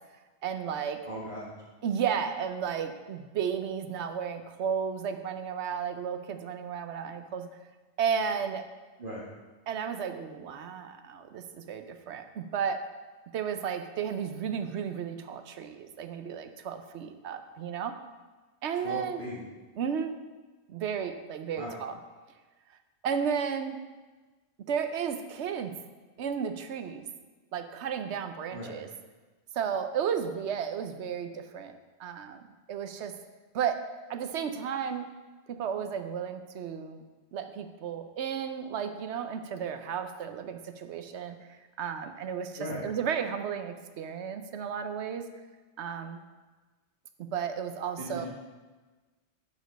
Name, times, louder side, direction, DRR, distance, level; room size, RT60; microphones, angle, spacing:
voice 1, 0.4-1.0 1.8-7.5 8.0-8.6 9.7-12.8 13.3-17.9 18.6-19.2 19.8-20.1 20.7-22.0 23.0-23.8 24.7-25.7 26.2-27.0 27.5-28.9 29.5-31.7 32.0-33.1 33.5-33.8 34.1-35.1 35.5-37.0 37.3-41.3 41.8-45.2 45.8-46.2 47.2-48.3, right 7 dB, 80° right, 8 dB, 1.0 m, -33 dB
voice 2, 1.1-1.5 9.0-9.2 18.8-19.4 21.6-21.7 28.5-28.8 42.6-42.8 48.0-48.3, equal, 50° right, -6 dB, 2.0 m, -38 dB
11.0 x 5.1 x 5.1 m, 1.3 s
omnidirectional pair, 1.1 m